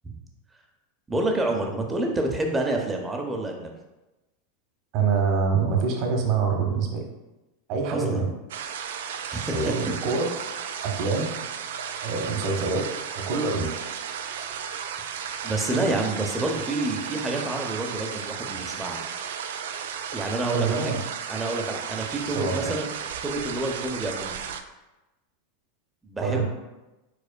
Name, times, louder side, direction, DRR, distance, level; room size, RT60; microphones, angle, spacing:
voice 1, 1.1-3.7 7.9-8.2 9.3-9.7 15.4-19.0 20.1-20.9 21.3-22.9 23.2-24.4 26.0-26.4, right 2 dB, 15° right, 2 dB, 0.8 m, -28 dB
voice 2, 4.9-7.0 7.7-8.3 9.5-10.3 10.8-11.3 12.0-12.9 13.1-13.7 20.5-21.0 22.2-22.7 26.2-26.4, right 5 dB, 50° right, 2 dB, 0.9 m, -25 dB
sound 1, 8.5-24.6, right 7 dB, 70° right, 0.3 m, -34 dB
5.0 x 4.1 x 2.2 m, 1.0 s
hypercardioid pair, 90°, 0 cm